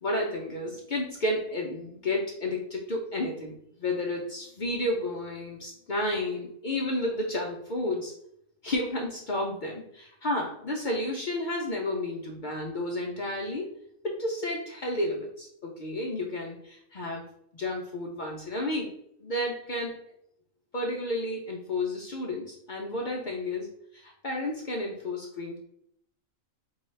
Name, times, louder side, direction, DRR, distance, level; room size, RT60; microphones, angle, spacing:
voice 1, 0.0-8.1 8.6-13.7 14.0-17.2 17.5-18.9 19.2-20.0 20.7-25.6, left 1 dB, 65° left, 0 dB, 0.5 m, -31 dB
4.5 x 2.3 x 3.1 m, 0.72 s
omnidirectional pair, 1.4 m